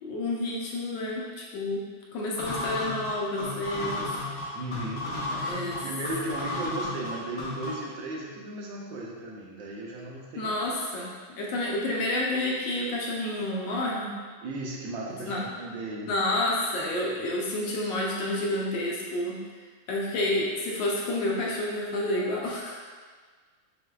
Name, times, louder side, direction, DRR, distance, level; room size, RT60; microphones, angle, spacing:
voice 1, 0.0-1.8 2.1-4.1 5.3-5.8 10.4-11.1 11.4-14.2 15.1-15.5 16.1-19.4 19.9-22.7, left 1 dB, 75° left, -3 dB, 1.1 m, -29 dB
sound 1, 2.4-7.9, left 2 dB, 50° left, 0.7 m, -34 dB
voice 2, 4.5-10.6 14.4-16.1, right 2 dB, 70° right, -2 dB, 1.2 m, -36 dB
6.3 x 2.6 x 2.2 m, 1.5 s
omnidirectional pair, 2.4 m